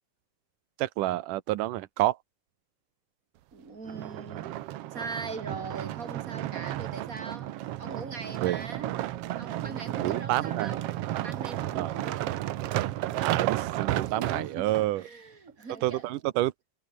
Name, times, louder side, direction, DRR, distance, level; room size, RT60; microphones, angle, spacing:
voice 1, 0.8-2.2 8.4-8.6 10.0-10.7 11.8-11.9 13.2-15.0 15.8-16.5, right 16 dB, 90° right, 2.5 m, -28 dB
voice 2, 3.5-4.5 4.9-9.0 9.4-10.9 11.2-12.2 14.0-16.1, right 4 dB, 25° right, 4.1 m, -41 dB
sound 1, 3.9-14.9 15.5-15.6, right 14 dB, 70° right, 1.5 m, -33 dB
omnidirectional pair, 3.6 m